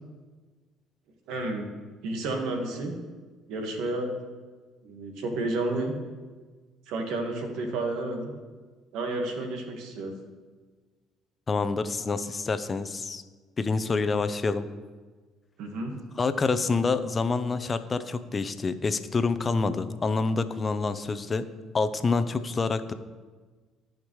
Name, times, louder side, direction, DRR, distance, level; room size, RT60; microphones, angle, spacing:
voice 1, 1.3-1.7 2.0-2.9 3.5-4.1 4.8-5.9 6.9-8.3 8.9-10.1 15.6-15.9, right 2 dB, 75° right, 3 dB, 1.7 m, -31 dB
voice 2, 11.5-13.2 13.6-14.7 16.2-21.5 21.7-22.9, left 4 dB, 35° left, 12 dB, 0.7 m, -27 dB
15.5 x 5.2 x 3.2 m, 1.4 s
supercardioid pair, 70°, 0 cm